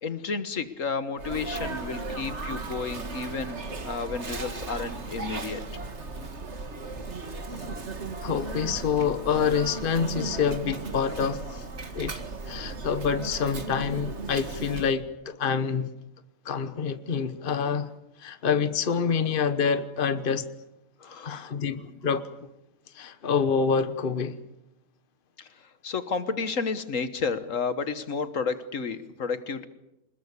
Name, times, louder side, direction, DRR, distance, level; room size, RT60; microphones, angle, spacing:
voice 1, 0.0-5.6 21.0-21.5 25.4-25.5 25.8-29.7, left 5 dB, 80° left, 12 dB, 1.8 m, -31 dB
Sneeze, 1.2-14.9, right 3 dB, 60° right, 2.2 m, -36 dB
voice 2, 8.2-11.6 11.9-12.1 12.5-15.9 16.4-17.9 18.2-20.5 21.2-22.5 22.9-24.4, left 6 dB, 45° left, 11 dB, 1.3 m, -27 dB
26.5 x 21.0 x 8.4 m, 0.88 s
omnidirectional pair, 1.3 m